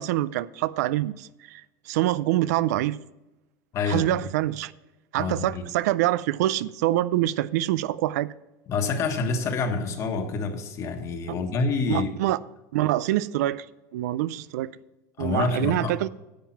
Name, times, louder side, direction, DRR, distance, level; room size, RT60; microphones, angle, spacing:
voice 1, 0.0-1.6 1.9-3.0 3.9-4.7 5.1-8.3 11.8-12.4 12.7-13.6 13.9-14.7 15.2-16.1, right 15 dB, 85° right, 0.4 m, -25 dB
voice 2, 3.7-4.1 5.2-5.6 8.7-12.1 15.2-15.9, left 4 dB, 35° left, 1.4 m, -27 dB
10.5 x 7.3 x 5.8 m
supercardioid pair, 145°, 9 cm